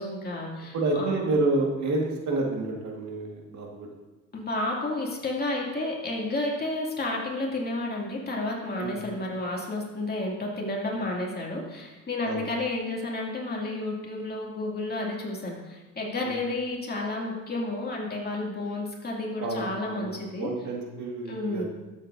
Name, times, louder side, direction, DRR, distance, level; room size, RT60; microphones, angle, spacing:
voice 1, 0.0-1.2 4.3-20.5 21.3-21.7, left 2 dB, 30° left, -2 dB, 2.4 m, -31 dB
voice 2, 0.7-3.9 8.8-9.0 12.2-12.4 16.2-16.4 19.4-20.1 20.4-21.7, right 2 dB, 70° right, 0 dB, 1.8 m, -29 dB
13.0 x 7.7 x 2.6 m, 1.1 s
cardioid pair, 90°, 30 cm